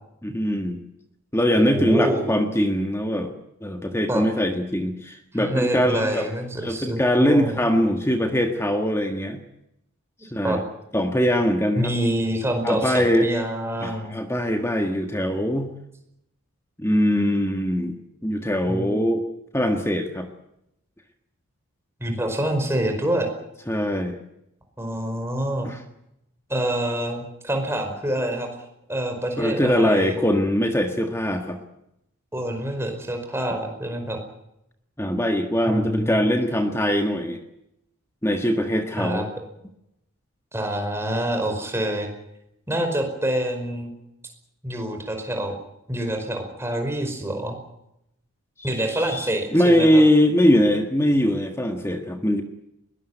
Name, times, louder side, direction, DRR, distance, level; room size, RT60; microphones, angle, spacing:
voice 1, 0.2-0.8 1.3-6.3 6.6-9.4 10.3-10.6 10.9-11.9 12.6-13.3 13.8-15.8 16.8-18.0 18.2-19.2 19.5-20.3 23.7-24.2 25.6-25.8 29.4-31.6 35.0-37.4 38.2-39.3 48.6-52.4, equal, 10° left, 5 dB, 1.6 m, -22 dB
voice 2, 1.6-2.3 4.1-4.2 5.3-7.6 10.4-10.6 11.8-14.1 18.6-19.0 22.0-23.3 24.8-25.7 26.5-28.5 28.9-30.2 32.3-34.2 35.7-36.4 39.0-39.3 40.5-42.1 42.7-43.9 44.6-45.5 45.9-47.6 48.6-50.0, right 1 dB, 10° right, 4 dB, 5.2 m, -26 dB
22.0 x 19.5 x 9.4 m, 0.83 s
head